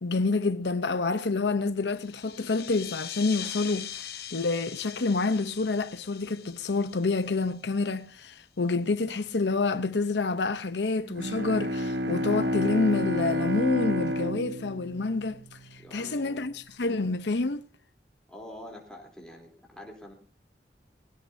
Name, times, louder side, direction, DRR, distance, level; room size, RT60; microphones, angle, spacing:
voice 1, 0.0-15.4 15.7-17.6, left 3 dB, 85° left, 0.8 m, -28 dB
sound 1, 1.9-8.1, left 10 dB, 60° left, 1.4 m, -42 dB
Bowed string instrument, 11.1-15.9, left 1 dB, 80° right, 1.0 m, -30 dB
voice 2, 15.8-16.5 18.3-20.1, left 1 dB, 5° left, 3.3 m, -46 dB
20.5 x 17.0 x 2.7 m
head